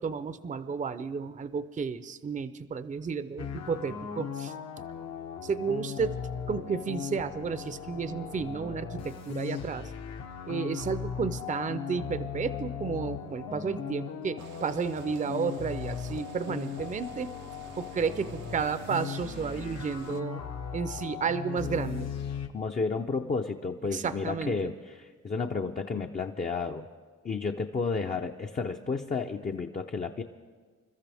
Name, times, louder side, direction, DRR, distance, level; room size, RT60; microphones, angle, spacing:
voice 1, 0.0-4.5 5.4-6.2 6.5-9.9 10.5-17.3 17.8-20.4 20.7-22.1 23.9-24.7, right 5 dB, 25° right, 13 dB, 0.6 m, -32 dB
sound 1, 3.4-22.5, left 7 dB, 60° left, 1.1 m, -38 dB
sound 2, 14.4-20.2, right 10 dB, 85° right, 0.7 m, -51 dB
voice 2, 22.5-26.9 27.2-30.2, left 4 dB, 30° left, 3 dB, 0.6 m, -32 dB
28.0 x 13.5 x 3.5 m, 1.5 s
cardioid pair, 90°, 30 cm